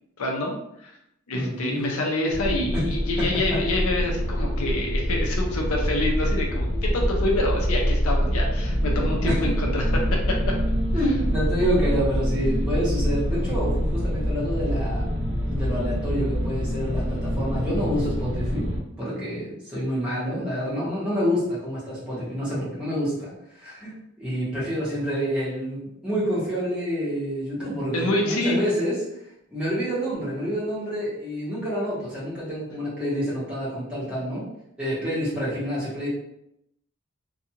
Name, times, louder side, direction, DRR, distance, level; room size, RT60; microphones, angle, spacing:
voice 1, 0.2-0.5 0.8-1.0 1.3-10.5 27.9-28.6, left 1 dB, 80° left, 0 dB, 0.5 m, -27 dB
voice 2, 1.3-1.8 2.6-2.9 3.2-3.6 8.9-9.4 10.9-15.0 15.5-18.7 19.0-29.0 29.5-34.5 34.8-36.1, equal, 5° right, -10 dB, 1.0 m, -28 dB
sound 1, 2.3-18.8, equal, 55° right, 0.7 m, -25 dB
2.5 x 2.3 x 2.8 m, 0.79 s
head